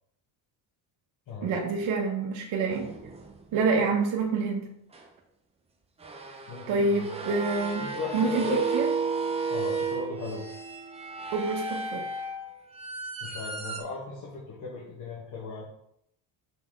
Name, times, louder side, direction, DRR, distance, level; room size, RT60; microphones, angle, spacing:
voice 1, 1.4-2.9 3.5-4.7 6.7-8.9 11.3-12.0, right 4 dB, 80° right, 0 dB, 1.4 m, -27 dB
sound 1, 2.7-3.5 4.9-5.0 6.0-13.8, right 4 dB, 15° right, 0.5 m, -33 dB
voice 2, 6.5-7.1 7.8-8.6 9.5-10.5 13.2-15.6, left 4 dB, 40° left, -5 dB, 1.6 m, -37 dB
6.1 x 5.9 x 3.7 m, 0.73 s
cardioid pair, 175°, 46 cm